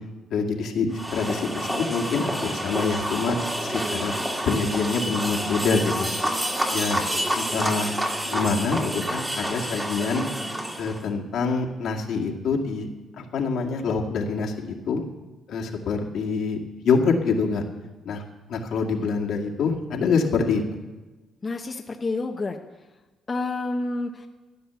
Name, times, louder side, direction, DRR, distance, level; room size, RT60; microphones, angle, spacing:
voice 1, 0.3-4.1 4.5-6.1 6.7-7.0 7.4-7.9 8.2-10.2 10.8-12.9 13.2-15.0 15.5-16.6 16.8-17.6 18.0-18.2 18.5-20.6, left 4 dB, 75° left, 0 dB, 2.2 m, -25 dB
sound 1, 0.9-11.0, equal, 15° right, 2.4 m, -28 dB
voice 2, 21.4-22.6 23.3-24.3, left 3 dB, 30° left, 2 dB, 1.1 m, -29 dB
14.5 x 10.0 x 7.0 m, 1.2 s
cardioid pair, 90°, 0 cm